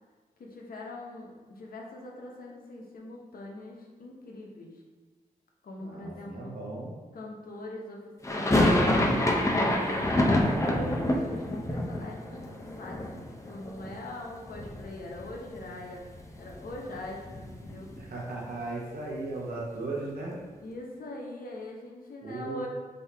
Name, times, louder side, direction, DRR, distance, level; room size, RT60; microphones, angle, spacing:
voice 1, 0.4-4.8 5.6-6.6 7.1-8.9 9.5-16.1 16.4-17.9 20.6-22.7, left 1 dB, 70° left, -1 dB, 1.0 m, -42 dB
voice 2, 5.8-6.9 18.0-20.4 22.2-22.6, right 2 dB, 70° right, -4 dB, 1.1 m, -36 dB
sound 1, 8.2-14.2 14.4-15.3 15.6-15.7 15.9-18.1, left 1 dB, 20° left, 0.7 m, -27 dB
5.4 x 2.8 x 3.5 m, 1.3 s
cardioid pair, 60°, 15 cm